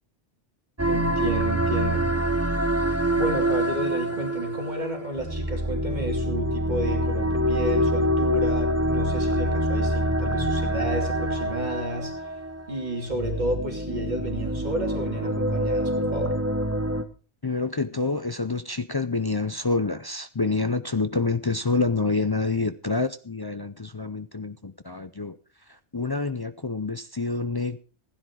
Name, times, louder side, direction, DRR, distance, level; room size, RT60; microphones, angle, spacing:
sound 1, 0.8-17.0, right 1 dB, 15° right, 0.9 m, -26 dB
voice 1, 0.9-2.1 3.2-12.2 12.7-16.4, equal, 40° right, 2 dB, 2.9 m, -31 dB
voice 2, 17.4-25.4 25.7-27.8, left 3 dB, 30° left, 10 dB, 0.4 m, -27 dB
15.5 x 10.0 x 4.7 m, 0.38 s
omnidirectional pair, 1.2 m